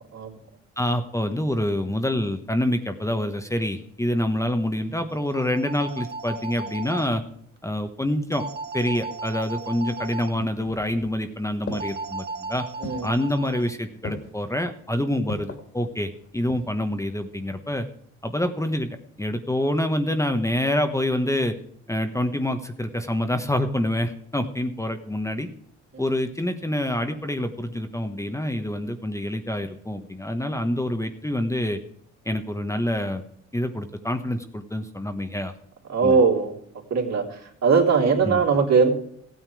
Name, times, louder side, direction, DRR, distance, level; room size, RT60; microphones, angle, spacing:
voice 1, 0.8-7.2 7.6-8.5 8.7-12.7 13.0-17.9 18.2-18.9 19.2-21.6 21.9-25.5 26.0-31.8 32.2-33.2 33.5-35.5 36.0-36.2 38.2-38.4, left 1 dB, 10° left, 7 dB, 1.2 m, -26 dB
sound 1, 5.1-7.1 8.3-10.3 11.7-13.7, right 4 dB, 35° right, 1.4 m, -36 dB
sound 2, 9.9-11.2 11.7-12.2 12.8-13.2 14.0-14.5 15.3-15.7 16.2-16.8 17.1-17.2, left 3 dB, 40° left, 2.7 m, -37 dB
voice 2, 12.8-13.1 25.9-26.0 35.9-36.5 36.9-37.2 37.6-38.9, right 5 dB, 60° right, 1 dB, 3.3 m, -20 dB
15.5 x 9.4 x 4.9 m, 0.68 s
cardioid pair, 90°, 30 cm